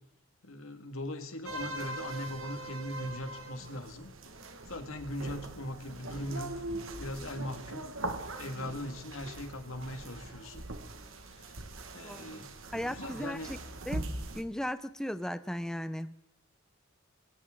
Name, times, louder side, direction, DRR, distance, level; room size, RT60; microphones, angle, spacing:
voice 1, 0.4-4.1 4.7-6.6 7.0-7.9 8.4-10.6 11.3-11.6 11.9-12.5 12.8-13.6, left 1 dB, 85° left, 1.9 m, -40 dB
sound 1, 1.4-14.4, right 2 dB, 75° right, 1.6 m, -41 dB
voice 2, 12.0-12.5 12.7-13.6 13.9-14.1 14.3-16.1, equal, 5° left, 0.4 m, -37 dB
22.0 x 16.5 x 3.7 m
head